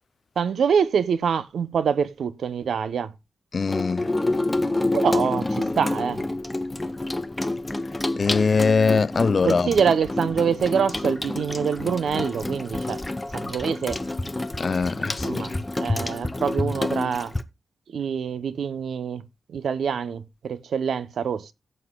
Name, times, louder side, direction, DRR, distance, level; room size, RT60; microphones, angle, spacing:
voice 1, 0.4-3.1 4.9-6.2 9.4-13.0 13.3-14.0 15.0-17.3 17.9-21.5, right 7 dB, 85° right, 0.7 m, -25 dB
voice 2, 3.5-4.1 8.2-9.7 14.6-15.4, left 4 dB, 50° left, 0.4 m, -22 dB
Water tap faucet / Sink (filling or washing), 3.6-17.4, left 2 dB, 15° left, 0.8 m, -28 dB
16.5 x 7.8 x 2.2 m
cardioid pair, 90°, 0 cm